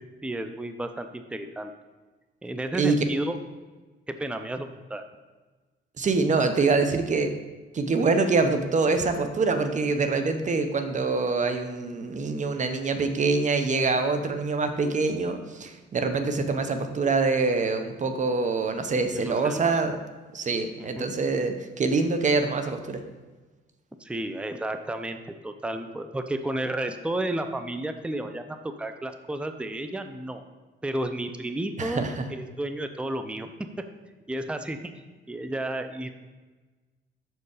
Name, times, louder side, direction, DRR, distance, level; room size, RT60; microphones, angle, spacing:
voice 1, 0.2-1.7 2.4-3.4 4.1-5.0 19.1-19.7 20.8-21.1 24.0-25.2 25.4-30.4 30.8-32.0 32.3-33.5 34.3-34.8 35.3-36.1, right 1 dB, 5° right, 7 dB, 0.5 m, -32 dB
voice 2, 6.0-7.3 7.7-20.0 20.3-23.0 31.8-32.2, right 4 dB, 40° right, 7 dB, 0.8 m, -25 dB
6.6 x 4.5 x 4.9 m, 1.3 s
cardioid pair, 90°, 20 cm